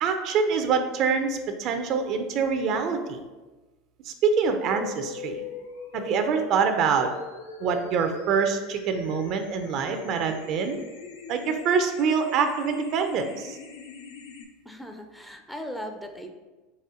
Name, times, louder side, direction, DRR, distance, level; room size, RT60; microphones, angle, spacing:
voice 1, 0.0-3.2 4.1-5.4 5.9-7.1 7.6-10.8 11.3-13.6, right 6 dB, 55° right, 7 dB, 0.5 m, -25 dB
sound 1, 4.4-14.4, left 4 dB, 85° left, 0.6 m, -41 dB
voice 2, 14.7-16.3, equal, 5° left, 4 dB, 0.5 m, -38 dB
4.2 x 3.3 x 3.7 m, 1.2 s
hypercardioid pair, 100°, 0 cm